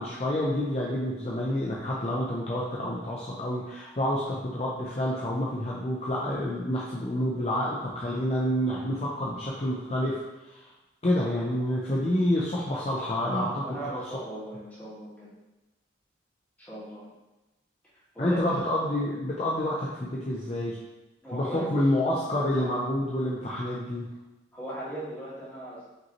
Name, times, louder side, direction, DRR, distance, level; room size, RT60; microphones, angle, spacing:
voice 1, 0.0-10.6 11.0-14.0 18.2-20.8 21.3-24.1, left 1 dB, 35° left, -5 dB, 0.5 m, -28 dB
voice 2, 11.7-12.0 13.3-15.3 16.6-17.1 18.1-18.6 21.2-22.8 24.5-25.9, right 1 dB, 10° left, -10 dB, 1.4 m, -38 dB
5.1 x 3.0 x 2.9 m, 1.0 s
head